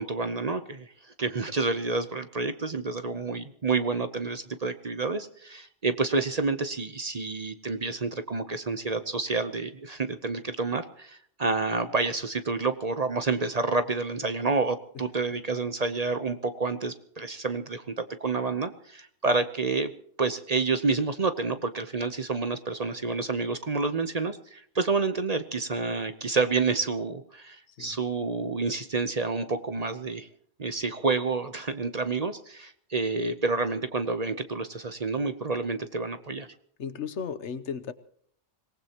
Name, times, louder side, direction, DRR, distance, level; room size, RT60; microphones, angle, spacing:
voice 1, 0.0-19.9 20.2-30.3 30.6-36.5, right 3 dB, 35° right, 10 dB, 0.9 m, -29 dB
voice 2, 27.7-28.0 36.8-37.9, left 6 dB, 75° left, 13 dB, 1.2 m, -35 dB
25.5 x 19.0 x 3.0 m, 0.62 s
omnidirectional pair, 1.2 m